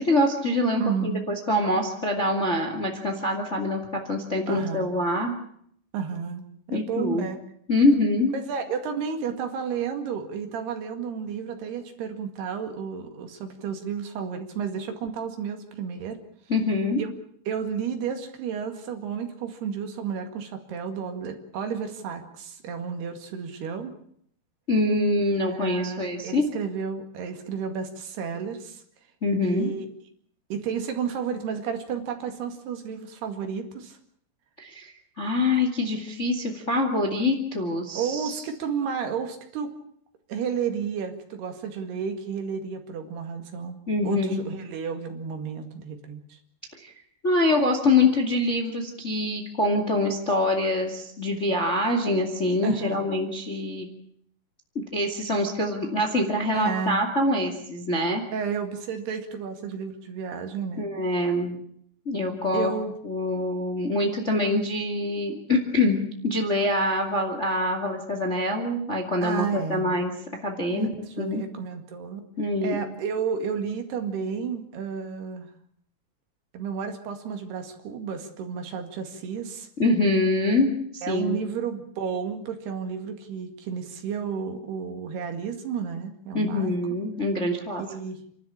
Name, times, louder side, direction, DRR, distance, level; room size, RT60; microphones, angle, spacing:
voice 1, 0.0-5.3 6.7-7.3 7.7-8.3 16.5-17.0 24.7-26.4 29.2-29.7 34.6-34.9 35.2-38.4 43.9-44.4 46.8-46.9 47.2-53.9 54.7-58.2 60.8-61.6 62.0-62.7 63.0-70.1 70.4-70.9 71.2-71.4 72.4-72.8 79.8-81.4 86.3-87.8, left 2 dB, 25° left, 4 dB, 1.6 m, -25 dB
voice 2, 0.8-1.3 4.5-4.9 5.9-7.4 8.3-16.2 17.0-17.1 17.5-23.9 25.5-28.8 29.4-29.9 30.5-34.0 37.9-39.7 40.3-46.4 52.6-53.0 56.5-57.0 58.3-60.9 62.5-62.9 69.2-69.9 70.7-70.9 71.2-72.2 72.6-75.5 76.5-79.7 81.0-86.7 87.8-88.2, right 6 dB, 65° right, 6 dB, 4.0 m, -32 dB
29.0 x 13.0 x 8.8 m, 0.69 s
omnidirectional pair, 5.1 m